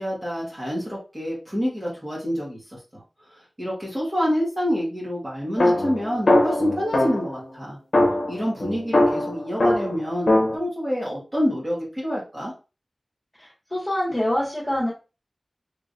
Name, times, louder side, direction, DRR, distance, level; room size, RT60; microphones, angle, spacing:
voice 1, 0.0-2.6 2.9-3.0 3.3-7.8 8.3-12.5, equal, 20° right, -6 dB, 1.7 m, -27 dB
sound 1, 5.6-7.4 7.9-10.5, left 1 dB, 75° left, 0.8 m, -21 dB
voice 2, 13.4-14.9, left 1 dB, 20° left, -7 dB, 1.7 m, -25 dB
3.7 x 3.2 x 2.5 m, 0.31 s
wide cardioid pair, 75°, 0 cm